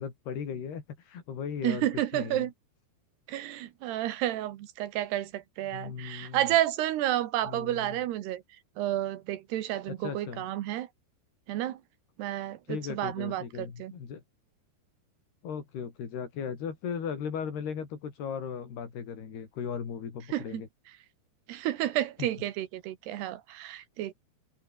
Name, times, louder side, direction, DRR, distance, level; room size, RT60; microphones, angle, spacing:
voice 1, 0.0-1.9 2.1-2.5 5.7-6.4 7.4-8.0 9.9-10.5 12.6-14.2 15.4-20.7 22.2-22.3 23.1-23.2, left 7 dB, 65° left, 6.0 m, -37 dB
voice 2, 1.6-2.5 3.3-8.4 8.8-10.9 11.5-11.8 12.2-13.9 20.3-20.6 21.5-24.1, right 13 dB, 70° right, 3.2 m, -31 dB
omnidirectional pair, 5.1 m